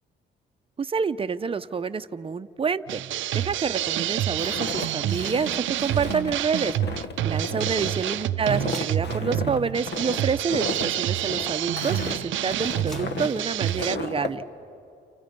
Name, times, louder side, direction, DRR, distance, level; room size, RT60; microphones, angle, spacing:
voice 1, 0.8-3.0 3.3-6.7 7.2-14.4, right 5 dB, 30° right, 10 dB, 0.7 m, -28 dB
sound 1, 2.9-14.0, right 12 dB, 75° right, 0.6 m, -28 dB
Walk footsteps, 4.4-14.3, left 3 dB, 60° left, 1.5 m, -34 dB
sound 2, 8.3-14.1, right 1 dB, ahead, 2.6 m, -52 dB
29.5 x 29.5 x 5.3 m, 2.7 s
cardioid pair, 90°, 20 cm